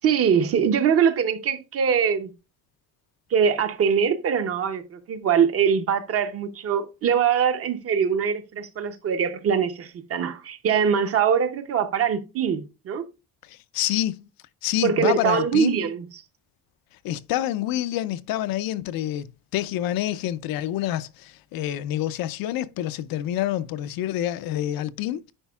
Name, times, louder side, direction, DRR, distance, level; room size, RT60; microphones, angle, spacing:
voice 1, 0.0-2.3 3.3-13.0 14.8-16.1, right 7 dB, 40° right, 0.7 m, -23 dB
voice 2, 13.5-14.3 14.6-15.8 17.0-25.3, left 13 dB, 75° left, 0.6 m, -27 dB
9.9 x 5.0 x 2.3 m
cardioid pair, 180°, 36 cm